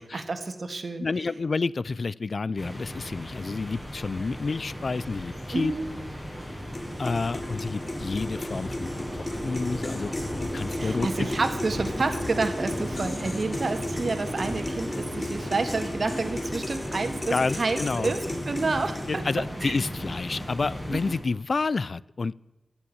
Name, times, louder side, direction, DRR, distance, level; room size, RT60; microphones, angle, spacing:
voice 1, 0.0-1.1 5.5-5.9 10.8-18.2 18.5-19.2 19.6-19.8 20.9-21.1, right 3 dB, 60° right, 8 dB, 1.7 m, -29 dB
voice 2, 1.0-5.7 7.0-10.1 10.5-11.3 17.3-18.1 19.1-22.3, left 4 dB, 60° left, 21 dB, 0.3 m, -29 dB
sound 1, 2.6-21.2, equal, 10° left, 5.5 m, -35 dB
sound 2, 6.7-19.4, left 1 dB, 30° left, 2.0 m, -37 dB
15.0 x 7.2 x 8.6 m, 1.0 s
cardioid pair, 45°, 0 cm